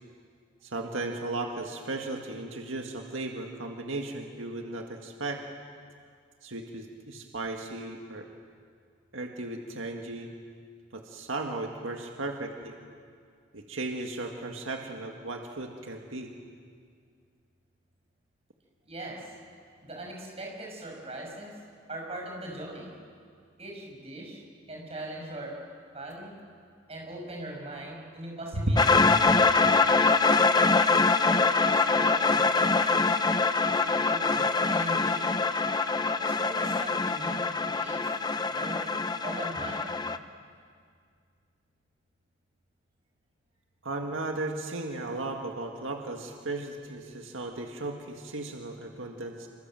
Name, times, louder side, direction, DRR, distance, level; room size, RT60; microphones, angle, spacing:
voice 1, 0.6-5.4 6.4-8.3 9.1-10.3 10.9-12.8 13.5-16.3 28.5-28.7 43.8-49.5, right 2 dB, 85° right, 2 dB, 2.0 m, -35 dB
voice 2, 18.8-19.3 19.8-21.5 21.9-22.9 23.6-25.5 25.9-26.3 26.9-28.9 30.0-30.5 30.9-33.2 33.6-35.5 36.2-38.1 38.5-39.0 39.2-40.0, right 1 dB, 30° right, -1 dB, 6.2 m, -40 dB
sound 1, 28.8-40.2, left 4 dB, 20° left, 0.7 m, -24 dB
27.0 x 24.5 x 7.7 m, 2.1 s
head